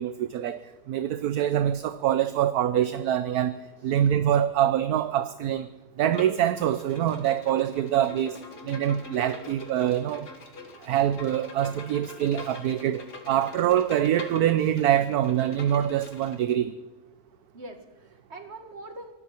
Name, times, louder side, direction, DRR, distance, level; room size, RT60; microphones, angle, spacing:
voice 1, 0.0-5.7 6.0-8.4 8.6-10.3 10.8-16.7, right 11 dB, 70° right, 1.2 m, -25 dB
voice 2, 3.8-4.2 17.5-19.1, right 2 dB, 40° right, 2.3 m, -43 dB
Bowed string instrument, 6.0-16.5, left 3 dB, 80° left, 2.7 m, -44 dB
24.5 x 13.0 x 4.5 m
omnidirectional pair, 1.7 m